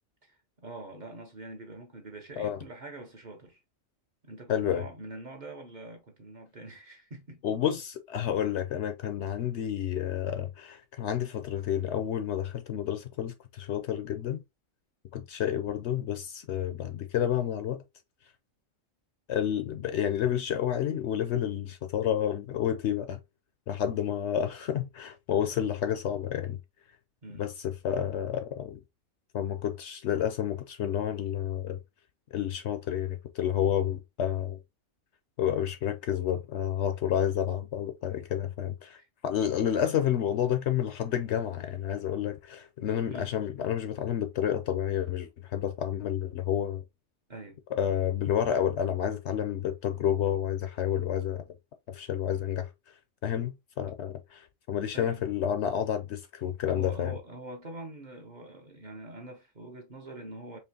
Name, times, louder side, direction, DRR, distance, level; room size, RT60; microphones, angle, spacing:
voice 1, 0.2-3.6 4.2-7.6 27.2-27.5 38.9-39.1 43.1-43.3 47.3-47.6 53.2-53.5 54.9-55.2 56.6-60.6, right 2 dB, 40° right, 0.9 m, -44 dB
voice 2, 4.5-4.8 7.4-14.4 15.1-17.8 19.3-23.2 23.7-26.6 27.4-28.8 29.3-31.8 32.3-34.6 35.4-39.0 39.2-46.8 47.8-51.4 51.9-52.7 53.2-57.1, left 10 dB, 65° left, 0.8 m, -30 dB
4.4 x 2.8 x 2.7 m
omnidirectional pair, 1.4 m